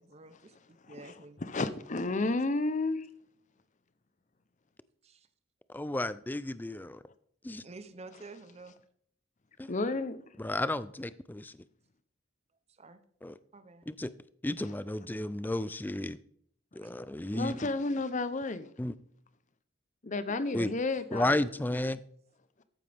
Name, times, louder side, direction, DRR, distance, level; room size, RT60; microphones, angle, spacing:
voice 1, 0.0-1.4 2.2-2.4 5.0-5.3 7.6-8.8 12.8-13.0 13.5-13.9 16.8-16.9 17.3-17.4 20.3-20.7 21.0-21.1, right 3 dB, 30° right, 0.7 m, -50 dB
voice 2, 1.4-3.0 9.7-10.2 17.3-18.7 20.0-21.3, left 3 dB, 35° left, 0.7 m, -31 dB
voice 3, 5.7-7.0 7.4-7.6 9.6-9.7 10.4-11.6 13.2-13.4 13.9-14.1 14.4-16.2 16.7-17.7 18.8-18.9 20.5-20.7 21.1-22.0, left 1 dB, 10° left, 0.3 m, -33 dB
13.5 x 9.2 x 3.5 m
head